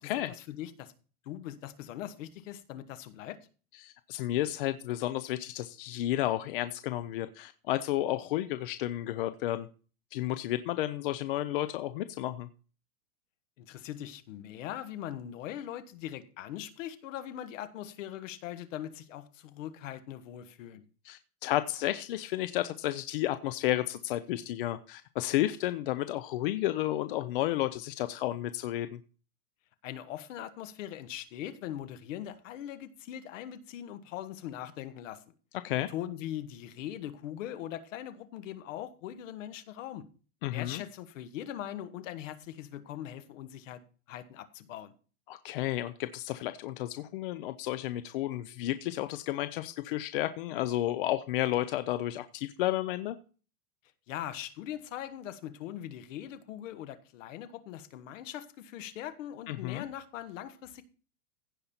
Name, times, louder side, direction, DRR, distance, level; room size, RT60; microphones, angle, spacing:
voice 1, 0.0-0.9 1.2-3.4 13.6-20.8 29.8-35.3 35.7-40.1 40.5-43.8 44.1-44.9 54.1-60.8, left 11 dB, 60° left, 1.4 m, -41 dB
voice 2, 3.8-9.7 10.1-12.5 21.0-29.0 35.6-35.9 40.4-40.8 45.3-53.2 59.5-59.9, left 14 dB, 40° left, 0.5 m, -32 dB
15.5 x 5.3 x 4.3 m
supercardioid pair, 165°, 44 cm